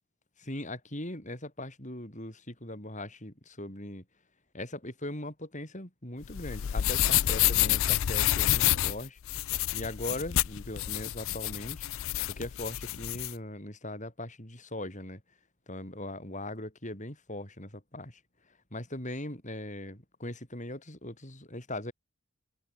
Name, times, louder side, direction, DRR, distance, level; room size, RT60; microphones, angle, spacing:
voice 1, 0.4-4.0 4.5-9.2 9.7-11.9 12.3-15.2 15.7-18.2 18.7-21.9, left 1 dB, 35° left, 7.7 m, -40 dB
sound 1, 6.2-13.3, left 13 dB, 60° left, 0.4 m, -28 dB
open air
head